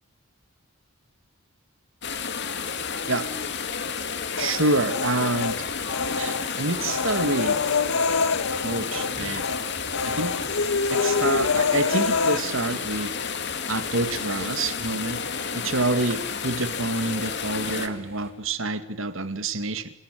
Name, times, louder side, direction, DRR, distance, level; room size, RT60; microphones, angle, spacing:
sound 1, 2.0-17.9, left 6 dB, 50° left, 2.5 m, -31 dB
Human voice, 4.4-5.6 5.9-9.1 9.4-9.6 9.9-12.4, left 4 dB, 85° left, 1.6 m, -26 dB
voice 1, 4.4-5.6 6.2-7.6 8.6-9.5 10.0-10.4 10.9-13.3 13.7-15.2 15.5-19.9, right 2 dB, 60° right, 11 dB, 2.3 m, -27 dB
sound 2, 4.6-18.3, right 1 dB, 10° right, 7.8 m, -49 dB
29.0 x 19.5 x 9.3 m, 0.73 s
head